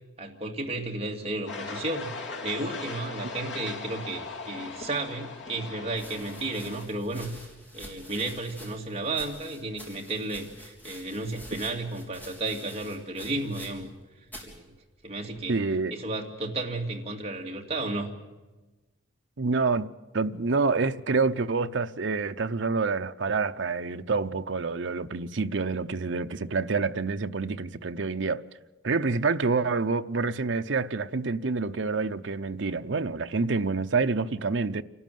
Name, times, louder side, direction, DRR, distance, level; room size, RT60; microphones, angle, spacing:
voice 1, 0.2-2.1 2.4-7.3 7.7-13.9 14.4-14.7 15.0-15.6 15.9-18.1, right 2 dB, 30° right, 2.4 m, -33 dB
sound 1, 1.5-6.9, left 4 dB, 65° left, 2.5 m, -39 dB
sound 2, 5.9-14.0 14.3-14.6 15.3-15.7, equal, 10° left, 3.7 m, -48 dB
voice 2, 15.5-15.9 19.4-19.9 20.1-28.4 28.8-34.8, right 4 dB, 65° right, 0.7 m, -27 dB
28.0 x 13.0 x 9.3 m
head